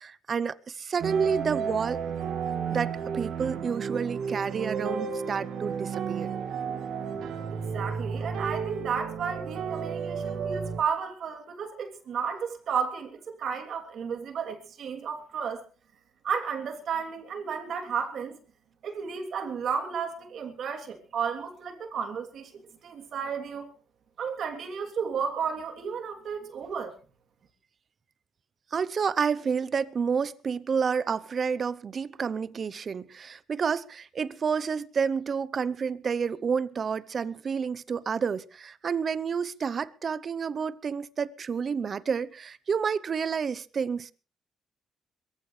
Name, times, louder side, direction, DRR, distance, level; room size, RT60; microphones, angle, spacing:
voice 1, 0.0-2.0 2.7-6.3 28.7-44.1, right 6 dB, 45° right, 0.8 m, -29 dB
sound 1, 1.0-10.8, right 6 dB, 80° right, 2.1 m, -32 dB
voice 2, 7.7-15.6 16.2-18.4 18.8-23.7 24.2-26.9, right 6 dB, 65° right, 3.1 m, -33 dB
22.5 x 15.0 x 3.3 m
cardioid pair, 90°, 0 cm